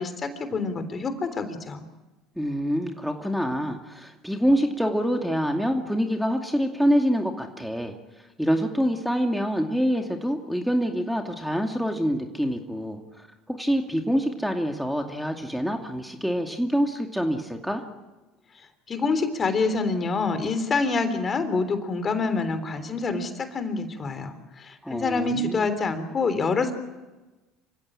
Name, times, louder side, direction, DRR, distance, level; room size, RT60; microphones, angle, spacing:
voice 1, 0.0-1.8 18.9-26.7, left 4 dB, 35° left, 10 dB, 3.5 m, -26 dB
voice 2, 2.4-8.0 8.4-17.8 24.8-25.7, equal, ahead, 3 dB, 2.4 m, -26 dB
27.5 x 16.0 x 9.0 m, 1.1 s
hypercardioid pair, 75°, 0 cm